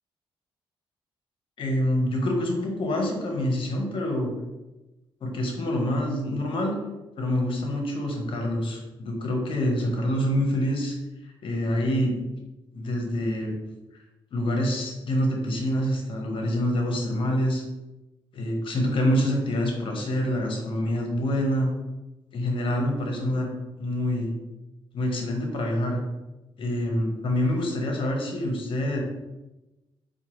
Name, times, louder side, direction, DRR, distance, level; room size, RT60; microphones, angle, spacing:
voice 1, 1.6-4.3 5.2-6.8 7.2-11.0 11.4-12.2 12.7-13.5 14.3-17.6 18.3-21.7 22.3-23.5 23.8-24.3 24.9-26.0 26.6-29.0, left 1 dB, 65° left, 1 dB, 0.9 m, -26 dB
4.4 x 2.2 x 3.0 m, 1.0 s
cardioid pair, 85°, 10 cm